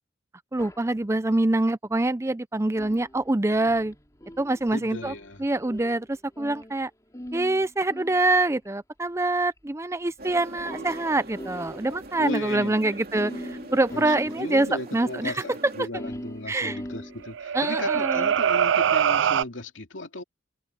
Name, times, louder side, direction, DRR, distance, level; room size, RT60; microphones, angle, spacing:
voice 1, 0.5-3.9 4.4-5.1 5.4-6.9 7.3-14.7 14.9-15.3 15.6-15.7 16.5-16.8 17.5-18.3, right 2 dB, 15° right, 0.5 m, -25 dB
sound 1, 0.6-0.9 2.8-6.9 7.1-8.7 9.6-9.7 10.2-10.3 10.6-12.1 12.4-12.5 12.7-12.8 13.1-14.8 16.0-17.7 18.3-18.7, equal, 15° left, 4.1 m, -41 dB
voice 2, 4.7-5.5 12.2-12.8 13.9-20.2, left 2 dB, 85° left, 2.5 m, -36 dB
sound 2, 10.2-15.9, right 2 dB, 50° right, 2.9 m, -41 dB
sound 3, 17.2-19.4, right 8 dB, 70° right, 0.4 m, -23 dB
head